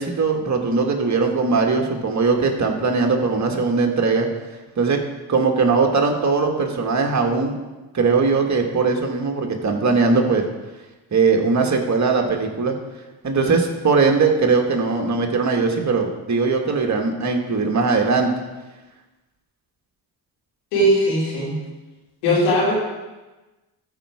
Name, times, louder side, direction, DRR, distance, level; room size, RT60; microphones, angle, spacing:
voice 1, 0.0-4.3 4.8-5.0 5.3-7.5 7.9-10.4 11.1-12.7 13.2-18.3, right 4 dB, 35° right, 2 dB, 1.8 m, -20 dB
voice 2, 20.7-21.5 22.2-22.7, equal, 90° left, -6 dB, 3.4 m, -18 dB
13.5 x 4.8 x 4.9 m, 1.2 s
hypercardioid pair, 50°, 48 cm